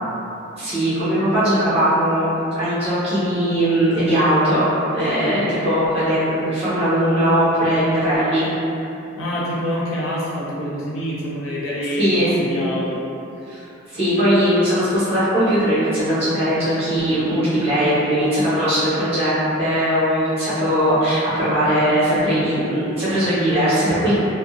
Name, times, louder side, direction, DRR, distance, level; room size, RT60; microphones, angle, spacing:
voice 1, 0.5-2.3 2.5-8.5 12.0-12.3 13.5-24.2, equal, 30° right, -13 dB, 1.0 m, -19 dB
voice 2, 9.2-12.1 12.4-13.0, equal, 85° left, -6 dB, 0.6 m, -26 dB
2.5 x 2.0 x 2.3 m, 2.7 s
head